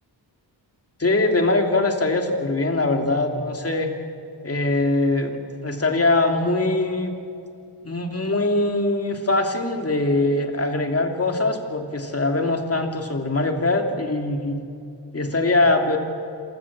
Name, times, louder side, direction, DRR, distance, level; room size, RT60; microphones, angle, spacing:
voice 1, 1.0-3.9 4.4-7.1 7.8-14.6 15.1-16.0, left 2 dB, 35° left, 4 dB, 2.9 m, -22 dB
27.0 x 16.0 x 7.5 m, 2.4 s
cardioid pair, 65°, 43 cm